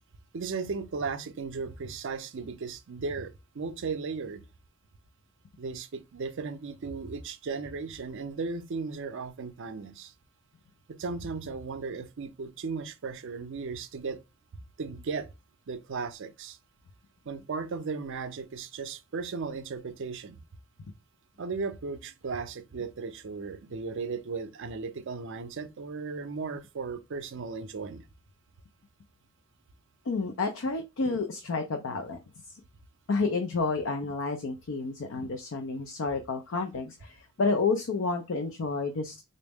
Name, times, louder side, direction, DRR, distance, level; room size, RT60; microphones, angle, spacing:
voice 1, 0.3-4.4 5.6-10.1 10.9-14.2 14.8-15.3 15.7-16.6 17.3-20.4 21.4-28.1, right 4 dB, 60° right, 0.5 m, -36 dB
voice 2, 30.1-32.2 32.5-32.6 33.1-39.2, left 4 dB, 60° left, 0.5 m, -30 dB
4.0 x 2.0 x 3.4 m
head